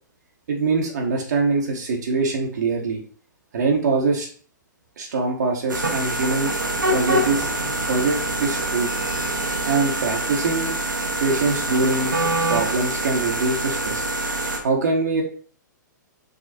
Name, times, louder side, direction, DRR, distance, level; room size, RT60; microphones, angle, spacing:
voice 1, 0.5-3.0 3.5-4.3 5.0-6.5 6.9-7.5 7.8-8.9 9.7-10.7 11.2-12.1 12.5-14.0 14.6-15.2, right 4 dB, 65° right, 1 dB, 1.0 m, -23 dB
sound 1, 5.7-14.6, right 1 dB, 90° right, 1.0 m, -25 dB
5.0 x 3.6 x 2.6 m, 0.43 s
figure-of-eight pair, 120°, 10 cm